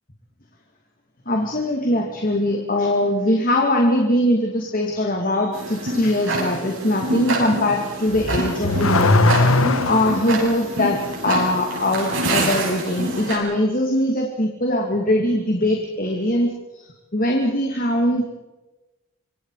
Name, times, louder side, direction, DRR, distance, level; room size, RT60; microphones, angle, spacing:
voice 1, 1.3-18.2, left 1 dB, 40° left, 1 dB, 2.6 m, -21 dB
Tick-tock, 5.5-13.4, right 1 dB, 65° right, 7.7 m, -27 dB
Car / Accelerating revving vroom, 8.1-10.3, left 2 dB, 80° left, 1.6 m, -19 dB
26.0 x 25.0 x 5.0 m, 1.1 s
head